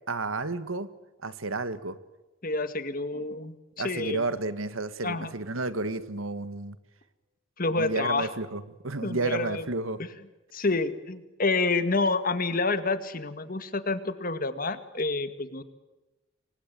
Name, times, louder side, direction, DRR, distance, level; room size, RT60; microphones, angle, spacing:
voice 1, 0.1-0.9 1.2-2.0 3.8-6.8 7.8-10.0, right 2 dB, 90° right, 12 dB, 1.9 m, -31 dB
voice 2, 2.4-3.6 3.8-4.3 5.0-5.3 7.6-8.3 9.0-9.7 10.5-15.6, left 3 dB, 45° left, 11 dB, 2.1 m, -28 dB
28.5 x 24.5 x 7.8 m, 1.1 s
head